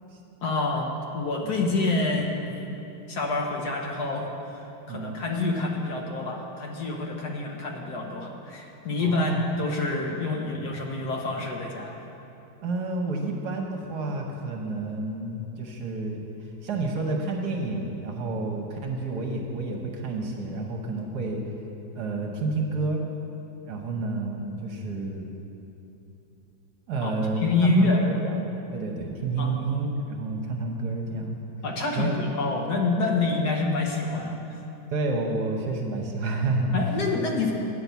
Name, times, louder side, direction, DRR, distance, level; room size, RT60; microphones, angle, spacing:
voice 1, 0.4-2.5 3.1-4.6 4.9-11.9 27.0-28.2 29.4-29.6 31.6-34.4 36.7-37.5, left 3 dB, 65° left, 1 dB, 1.3 m, -27 dB
voice 2, 4.9-5.2 9.0-9.4 10.5-10.6 12.6-16.2 16.6-21.4 21.9-23.0 23.6-25.2 26.9-28.4 28.7-31.4 31.9-32.1 34.9-36.7, right 3 dB, 60° right, 1 dB, 1.3 m, -30 dB
8.3 x 5.8 x 8.1 m, 2.9 s
omnidirectional pair, 2.1 m